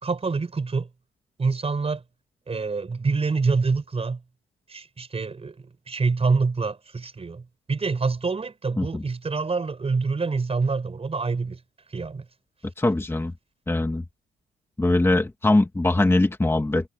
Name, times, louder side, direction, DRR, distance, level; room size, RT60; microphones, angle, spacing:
voice 1, 0.0-0.9 1.4-2.0 2.5-4.2 4.7-5.5 5.9-11.6 11.9-12.2, right 4 dB, 30° right, 5.0 m, -26 dB
voice 2, 12.8-13.3 13.7-14.0 14.8-16.9, left 2 dB, 10° left, 1.8 m, -22 dB
cardioid pair, 90°, 20 cm